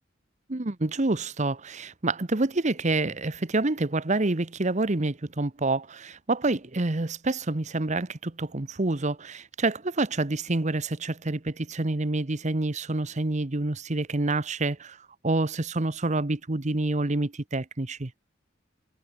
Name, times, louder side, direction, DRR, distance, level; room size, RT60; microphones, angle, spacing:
voice 1, 0.5-15.0 15.2-18.1, right 2 dB, 35° right, 1.1 m, -27 dB
head